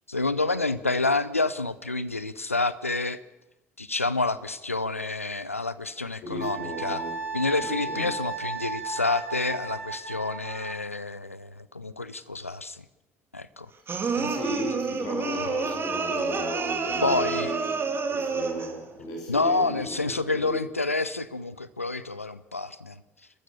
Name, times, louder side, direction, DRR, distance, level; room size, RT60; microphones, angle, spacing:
voice 1, 0.1-3.2 3.8-7.0 7.3-12.8 13.3-13.7 14.2-14.3 15.4-15.5 17.0-17.5 19.3-23.0, left 3 dB, 90° left, 16 dB, 0.6 m, -28 dB
voice 2, 6.2-7.1 7.6-8.1 14.1-20.6, left 1 dB, 55° left, -1 dB, 7.2 m, -35 dB
Wind instrument woodwind instrument, 6.4-10.7, right 4 dB, 90° right, 1.9 m, -34 dB
sound 1, 13.9-18.8, right 5 dB, 30° right, 2.7 m, -29 dB
29.0 x 13.5 x 6.7 m, 0.98 s
figure-of-eight pair, 55°, 7 cm